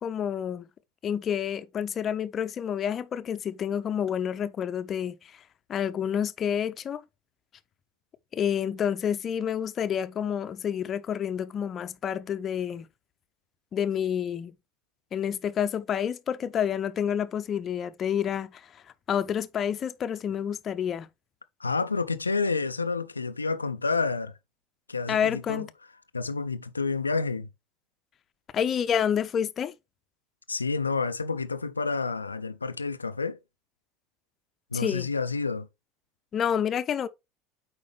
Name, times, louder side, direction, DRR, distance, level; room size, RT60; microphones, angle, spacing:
voice 1, 0.0-0.7 1.0-5.4 5.7-7.0 8.3-12.9 13.7-14.5 15.1-18.6 19.1-21.1 25.1-25.7 28.5-29.7 34.7-35.1 36.3-37.1, left 8 dB, 40° left, 0.7 m, -29 dB
voice 2, 21.6-24.3 24.9-25.7 26.1-27.5 30.5-33.4 34.7-35.7, left 4 dB, 90° left, 0.4 m, -29 dB
8.4 x 4.8 x 3.2 m
figure-of-eight pair, 70°, 0 cm